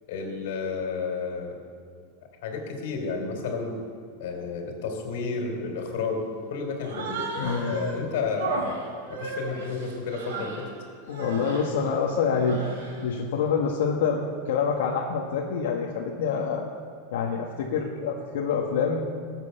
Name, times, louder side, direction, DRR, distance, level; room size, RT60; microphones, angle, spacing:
voice 1, 0.1-1.6 2.4-3.8 4.2-6.2 6.5-7.3 7.7-8.7 9.1-10.7, left 4 dB, 60° left, 3 dB, 3.3 m, -31 dB
Human voice, 6.8-8.0 8.4-10.7 11.1-11.7 12.3-13.0, right 3 dB, 85° right, 4.0 m, -34 dB
voice 2, 7.4-7.7 11.1-12.6 13.0-16.7 17.1-19.2, left 6 dB, 80° left, -2 dB, 1.6 m, -26 dB
19.5 x 8.2 x 7.0 m, 2.1 s
supercardioid pair, 175°, 0 cm